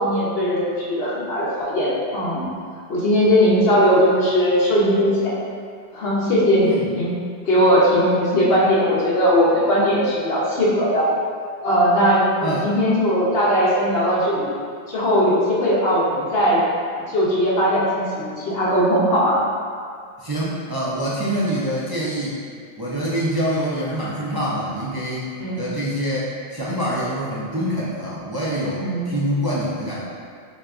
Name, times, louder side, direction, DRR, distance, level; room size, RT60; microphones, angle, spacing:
voice 1, 0.0-2.5 2.9-5.3 5.9-7.2 7.5-11.1 11.6-14.5 14.9-16.6 17.1-19.4 25.4-25.6 28.8-29.1, equal, 65° left, -6 dB, 1.1 m, -19 dB
voice 2, 20.2-22.4 22.8-30.0, equal, 40° right, -8 dB, 0.3 m, -25 dB
6.1 x 2.4 x 2.4 m, 2.2 s
omnidirectional pair, 1.1 m